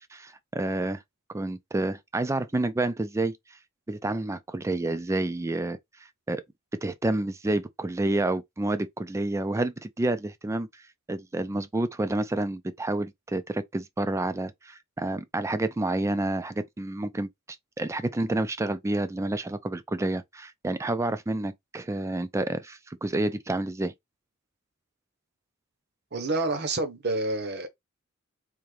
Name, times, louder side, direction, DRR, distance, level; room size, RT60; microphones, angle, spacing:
voice 1, 0.1-1.0 1.3-3.4 3.9-5.8 6.3-6.4 6.8-10.7 11.1-17.3 17.8-23.9, right 2 dB, 15° right, 0.3 m, -29 dB
voice 2, 26.1-27.7, right 2 dB, 50° right, 0.9 m, -28 dB
3.6 x 2.6 x 3.2 m
head